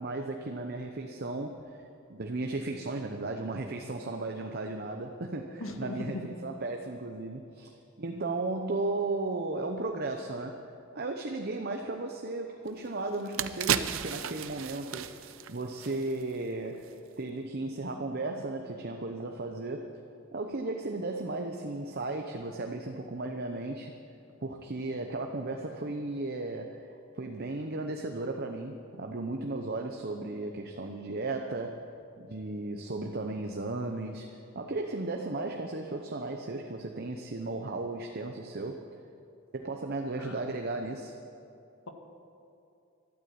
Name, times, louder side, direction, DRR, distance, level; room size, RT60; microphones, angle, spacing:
voice 1, 0.0-1.6 2.1-10.6 10.9-15.1 15.5-19.9 20.3-23.9 24.4-31.8 32.2-38.8 39.5-41.1, right 2 dB, 50° right, 4 dB, 0.8 m, -35 dB
voice 2, 5.6-6.3 40.2-40.4, left 2 dB, 80° left, 4 dB, 1.7 m, -38 dB
sound 1, 12.7-12.8 13.1-16.4 16.7-16.9, right 9 dB, 75° right, 0.6 m, -34 dB
12.5 x 12.5 x 8.6 m, 2.6 s
head